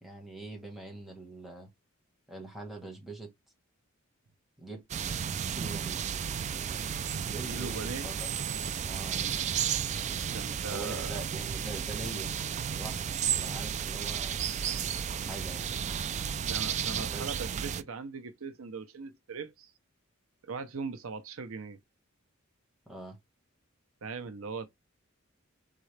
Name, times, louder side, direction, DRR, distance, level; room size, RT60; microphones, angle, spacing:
voice 1, 0.0-1.7 2.3-3.3 4.6-4.8 5.5-6.0 7.2-8.3 8.5-9.2 10.7-12.3 12.8-13.0 13.4-14.4 15.2-15.7 17.0-17.3 22.9-23.2, right 2 dB, ahead, 1.4 m, -43 dB
sound 1, 4.9-17.8, right 8 dB, 35° right, 0.3 m, -33 dB
voice 2, 7.5-8.1 10.3-11.1 16.4-19.7 20.5-21.8 24.0-24.7, right 4 dB, 75° right, 0.7 m, -39 dB
3.9 x 3.7 x 3.3 m
head